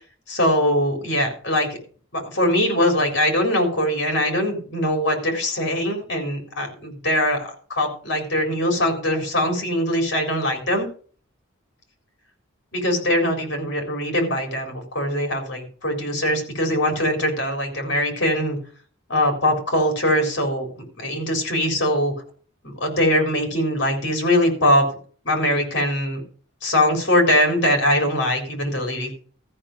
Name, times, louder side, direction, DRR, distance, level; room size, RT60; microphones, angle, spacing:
voice 1, 0.3-1.7 2.1-10.9 12.7-18.6 19.1-22.1 22.6-24.9 25.2-26.2 26.6-29.1, left 1 dB, 55° left, 3 dB, 3.9 m, -22 dB
14.0 x 5.8 x 6.5 m, 0.42 s
head